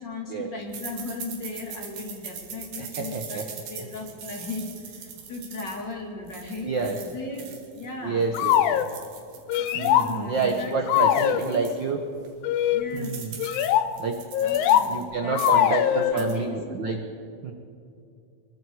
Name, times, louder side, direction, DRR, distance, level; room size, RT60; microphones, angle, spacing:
voice 1, 0.0-8.3 9.6-11.7 12.7-13.4 14.4-16.8, left 2 dB, 35° left, 1 dB, 3.0 m, -37 dB
sound 1, 0.7-7.9 8.2-11.8 12.2-12.3 12.6-15.0 15.3-15.7 16.0-16.4, right 7 dB, 85° right, 3.9 m, -42 dB
voice 2, 2.8-3.4 6.4-7.0 8.0-8.8 9.7-12.0 12.9-13.3 14.0-14.2 14.9-17.0 17.4-17.5, right 4 dB, 70° right, 5 dB, 1.1 m, -28 dB
sound 2, 8.3-8.9 9.5-10.1 10.9-11.4 12.4-12.9 13.4-13.9 14.3-14.9 15.3-16.1, left 12 dB, 90° left, 1.4 m, -21 dB
24.5 x 22.0 x 4.9 m, 2.5 s
omnidirectional pair, 3.8 m